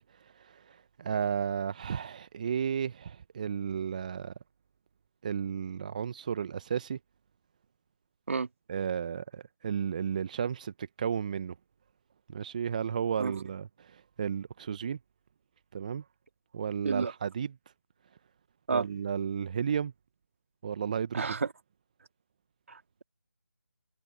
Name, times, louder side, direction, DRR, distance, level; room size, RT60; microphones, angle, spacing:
voice 1, 0.0-4.3 5.2-7.0 8.7-11.5 12.3-15.0 15.7-16.0 16.5-17.5 18.7-19.9 20.6-21.4, right 7 dB, 25° right, 0.8 m, -33 dB
voice 2, 21.1-21.5 22.7-23.0, right 4 dB, 50° right, 2.4 m, -31 dB
figure-of-eight pair, 160°, 10 cm